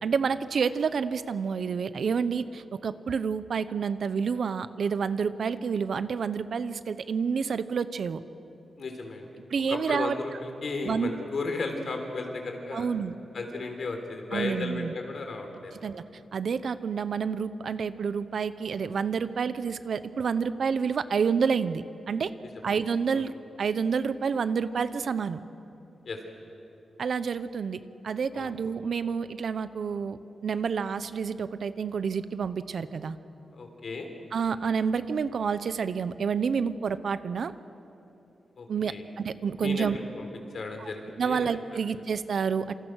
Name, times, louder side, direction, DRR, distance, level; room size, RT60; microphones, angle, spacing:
voice 1, 0.0-8.2 9.5-10.2 10.8-11.1 12.7-13.1 14.3-14.9 15.8-16.0 16.3-22.3 22.6-23.3 23.6-25.4 27.0-33.2 34.3-37.5 38.7-40.0 40.8-40.9 41.2-42.7, right 6 dB, 60° right, 13 dB, 0.8 m, -29 dB
voice 2, 8.8-9.3 9.7-12.9 13.3-15.7 23.1-23.2 26.0-26.2 28.3-28.5 33.5-34.1 38.6-39.0 39.6-40.3 40.5-41.5, left 3 dB, 55° left, 4 dB, 3.8 m, -34 dB
27.5 x 27.0 x 6.4 m, 2.9 s
wide cardioid pair, 145°, 0 cm